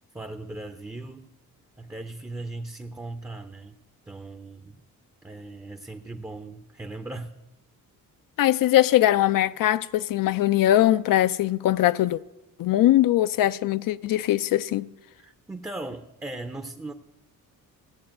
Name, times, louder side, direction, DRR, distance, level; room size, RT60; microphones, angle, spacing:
voice 1, 0.1-1.3 1.8-3.8 4.1-4.8 5.2-7.3 15.2-16.9, right 2 dB, 10° right, 0.6 m, -38 dB
voice 2, 8.4-12.2 12.6-14.8, left 13 dB, 70° left, 0.6 m, -21 dB
16.0 x 8.5 x 8.8 m
cardioid pair, 140°, 35 cm